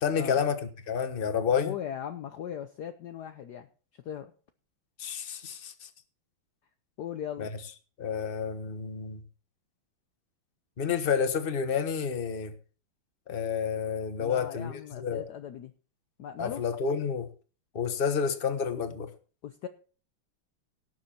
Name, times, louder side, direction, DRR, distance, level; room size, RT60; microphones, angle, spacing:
voice 1, 0.0-0.6 0.9-1.7 5.0-5.7 7.4-7.5 8.0-9.2 10.8-12.5 13.3-15.2 16.4-17.3 17.7-19.1, left 6 dB, 30° left, 9 dB, 1.2 m, -29 dB
voice 2, 1.5-3.7 4.0-4.3 7.0-7.5 14.2-15.7 16.2-16.6 19.4-19.7, left 9 dB, 65° left, 8 dB, 1.2 m, -38 dB
18.0 x 6.9 x 4.4 m, 0.39 s
omnidirectional pair, 2.2 m